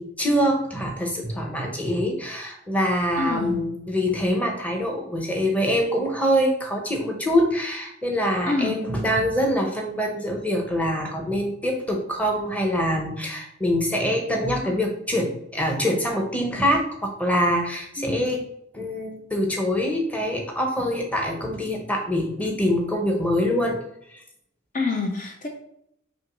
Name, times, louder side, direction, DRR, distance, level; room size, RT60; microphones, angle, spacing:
voice 1, 0.0-18.4 18.7-23.8, equal, 5° left, 1 dB, 0.9 m, -24 dB
voice 2, 3.2-3.6 8.5-8.8 14.6-14.8 18.0-18.3 24.7-25.5, left 3 dB, 40° left, 3 dB, 0.6 m, -27 dB
6.2 x 3.1 x 5.2 m, 0.74 s
head